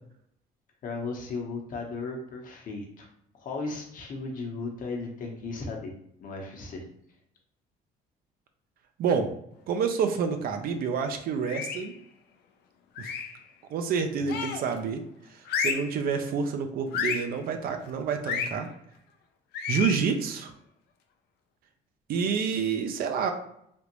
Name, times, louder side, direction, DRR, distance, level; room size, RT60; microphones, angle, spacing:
voice 1, 0.8-3.1 3.4-5.9 6.2-6.8 14.1-14.4, left 3 dB, 55° left, 1 dB, 0.9 m, -36 dB
voice 2, 9.0-9.3 9.7-11.9 13.0-13.1 13.7-15.0 15.6-18.7 19.7-20.5 22.1-23.3, right 6 dB, 60° right, 7 dB, 0.5 m, -28 dB
sound 1, 11.4-11.9 13.0-13.4 14.3-14.7 15.5-15.9 16.9-17.3 18.2-18.5 19.5-20.0, left 6 dB, 75° left, 0.5 m, -31 dB
3.4 x 2.5 x 3.0 m, 0.72 s
cardioid pair, 110°, 17 cm